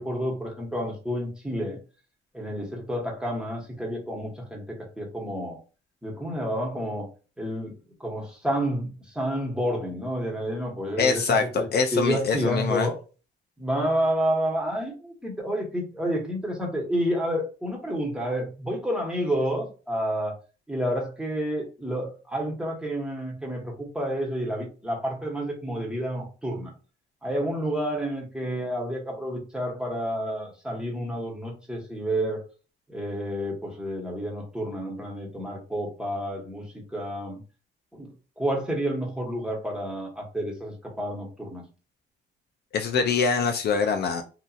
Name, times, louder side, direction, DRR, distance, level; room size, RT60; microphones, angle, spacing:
voice 1, 0.0-1.8 2.3-5.6 6.0-7.1 7.4-7.7 8.0-11.7 11.9-13.0 13.6-20.3 20.7-26.7 27.2-32.5 32.9-37.4 37.9-38.1 38.4-41.6, equal, 5° right, 1.1 m, -29 dB
voice 2, 11.0-12.9 42.7-44.2, left 5 dB, 55° left, 0.5 m, -24 dB
2.8 x 2.4 x 2.4 m
cardioid pair, 90°, 20 cm